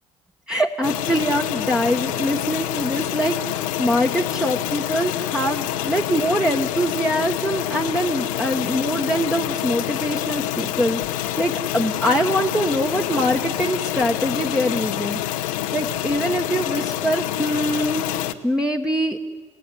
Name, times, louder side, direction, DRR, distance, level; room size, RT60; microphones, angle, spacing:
voice 1, 0.5-15.2 15.7-19.3, equal, 5° right, 2 dB, 1.5 m, -23 dB
sound 1, 0.8-18.3, left 13 dB, 75° left, 0.9 m, -27 dB
27.0 x 17.5 x 8.4 m, 1.4 s
hypercardioid pair, 55°, 17 cm